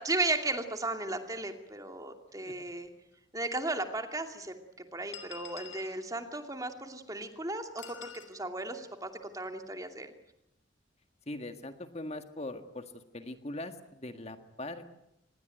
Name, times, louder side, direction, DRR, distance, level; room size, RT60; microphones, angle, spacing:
voice 1, 0.0-2.9 3.3-4.5 4.9-10.1, right 2 dB, 20° right, 6 dB, 2.5 m, -35 dB
sound 1, 3.1-3.2 4.1-4.2 5.1-6.0 7.8-8.3, left 8 dB, 85° left, 5.6 m, -46 dB
voice 2, 11.3-12.9 13.1-14.9, left 1 dB, 35° left, 7 dB, 1.7 m, -41 dB
26.0 x 21.0 x 9.2 m, 0.84 s
head